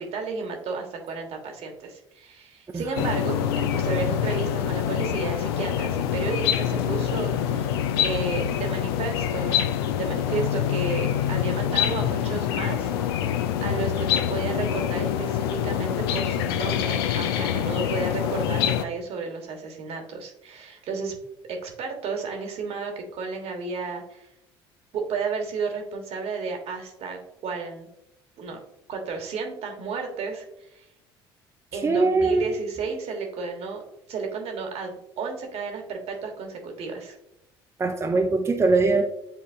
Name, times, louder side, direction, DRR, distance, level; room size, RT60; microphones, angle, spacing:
voice 1, 0.0-9.6 10.0-13.2 13.6-21.2 21.5-24.3 24.9-27.9 28.4-28.6 28.9-30.4 30.7-30.9 31.7-33.8 34.1-37.2, right 4 dB, 55° right, 3 dB, 1.4 m, -32 dB
voice 2, 2.7-3.1 31.8-32.5 37.8-39.1, right 3 dB, 20° right, 3 dB, 0.7 m, -22 dB
sound 1, 3.0-18.9, left 10 dB, 75° left, 0.4 m, -25 dB
9.3 x 3.7 x 2.7 m, 0.83 s
figure-of-eight pair, 55°, 13 cm